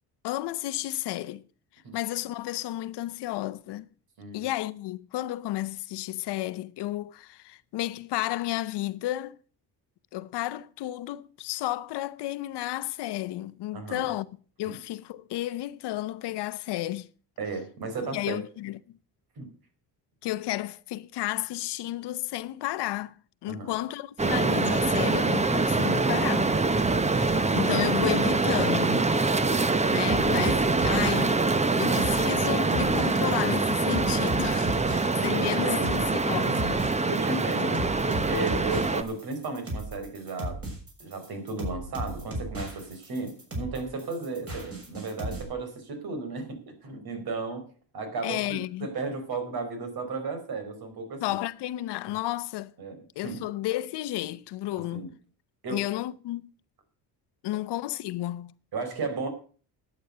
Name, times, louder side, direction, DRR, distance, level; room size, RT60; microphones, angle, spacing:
voice 1, 0.2-1.4 1.9-3.9 4.3-9.4 10.1-14.3 14.6-17.1 18.1-18.8 20.2-23.2 23.4-26.6 27.1-29.1 29.9-31.4 31.8-34.8 35.2-37.1 48.2-48.9 51.2-52.7 53.2-55.1 55.7-56.5 57.4-58.5, left 15 dB, 80° left, 0.8 m, -32 dB
voice 2, 4.2-4.5 13.7-14.1 14.6-14.7 17.4-18.4 19.4-19.5 23.5-23.7 35.3-36.0 37.1-40.6 41.0-47.7 47.9-51.4 52.8-53.0 53.2-53.4 54.7-55.1 55.6-55.8 58.7-59.3, right 3 dB, 65° right, 4.5 m, -34 dB
sound 1, 24.2-39.0, right 3 dB, 15° right, 0.9 m, -24 dB
sound 2, 30.1-45.4, right 1 dB, 35° right, 6.7 m, -36 dB
11.5 x 8.9 x 6.7 m
cardioid pair, 100°, 40 cm